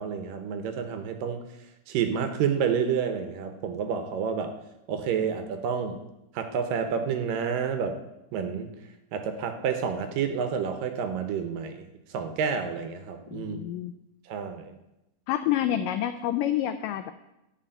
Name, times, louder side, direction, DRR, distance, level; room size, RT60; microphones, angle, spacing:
voice 1, 0.0-1.4 1.9-4.5 4.9-6.0 6.4-8.0 8.3-8.7 9.1-11.9 12.1-13.6 14.3-14.7, right 7 dB, 70° right, 7 dB, 2.3 m, -29 dB
voice 2, 13.3-13.9 15.3-17.1, left 11 dB, 90° left, 10 dB, 1.9 m, -28 dB
13.5 x 4.7 x 8.8 m, 0.91 s
omnidirectional pair, 4.4 m